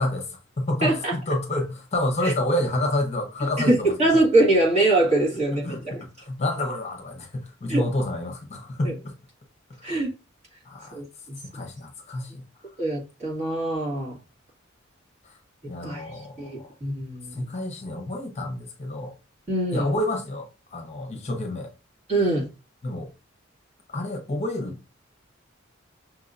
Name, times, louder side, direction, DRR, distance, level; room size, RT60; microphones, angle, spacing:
voice 1, 0.0-3.9 5.3-9.2 9.8-10.0 10.6-11.0 11.5-12.4 15.2-15.4 15.6-16.6 17.3-19.1 19.7-21.7 22.8-23.1 23.9-24.9, left 1 dB, 35° left, 0.8 m, -29 dB
voice 2, 0.8-1.1 2.2-2.3 3.6-6.0 7.7-7.8 8.8-8.9 9.8-10.1 10.9-11.4 12.8-14.1 15.8-16.1 16.4-17.4 19.5-20.0 22.1-22.5, right 2 dB, 35° right, 1.7 m, -23 dB
6.0 x 2.8 x 2.6 m
head